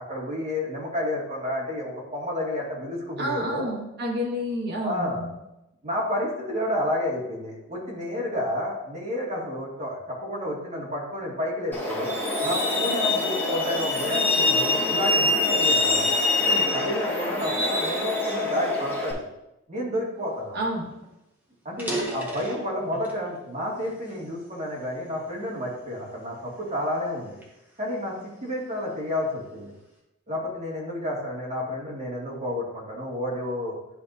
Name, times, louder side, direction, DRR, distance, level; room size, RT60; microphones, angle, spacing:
voice 1, 0.0-3.7 4.8-5.3 5.8-12.1 12.4-16.1 16.5-19.2 19.7-20.6 21.6-27.4 27.8-29.7 30.3-33.8, left 1 dB, 35° right, -4 dB, 2.1 m, -30 dB
voice 2, 3.2-5.3 17.6-17.7 20.5-20.9, equal, 55° right, -2 dB, 1.7 m, -29 dB
Truck, 11.7-19.1, left 2 dB, 10° left, 1.5 m, -24 dB
sound 1, 20.6-20.7 21.0-21.1 21.6-23.3 23.8-25.1 25.7-25.9 26.6-28.6, right 1 dB, 10° right, 1.4 m, -35 dB
10.5 x 4.7 x 2.7 m, 0.90 s
head